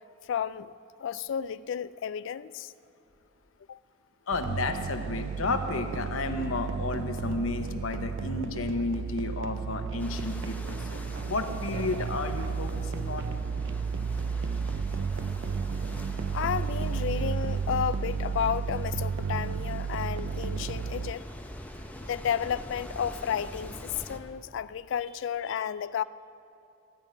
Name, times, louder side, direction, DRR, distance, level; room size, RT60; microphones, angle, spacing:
voice 1, 0.3-0.7 1.0-2.7 3.7-3.8 16.3-21.2 22.0-26.0, left 8 dB, 65° left, 16 dB, 0.3 m, -32 dB
voice 2, 4.3-10.8 11.2-13.4, left 3 dB, 85° left, 6 dB, 0.9 m, -32 dB
sound 1, 4.3-21.1, right 5 dB, 65° right, 0.4 m, -32 dB
sound 2, 10.0-24.2, left 1 dB, 10° left, 0.7 m, -45 dB
14.5 x 5.3 x 9.0 m, 2.8 s
head